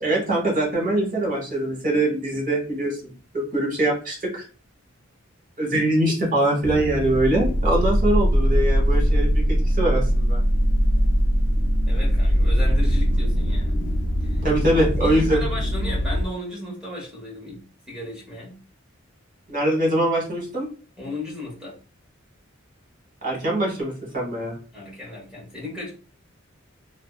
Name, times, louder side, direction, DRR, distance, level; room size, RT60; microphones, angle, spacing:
voice 1, 0.0-4.4 5.6-9.4 9.7-10.4 14.4-15.4 19.5-20.7 23.2-24.5, right 1 dB, 40° right, -2 dB, 1.0 m, -23 dB
sound 1, 6.6-16.3, equal, 65° left, 0.5 m, -21 dB
voice 2, 11.9-13.8 14.2-14.4 14.7-17.6 17.9-18.6 21.0-21.8 24.7-25.9, left 1 dB, 5° right, -4 dB, 1.2 m, -35 dB
2.5 x 2.1 x 2.3 m, 0.37 s
head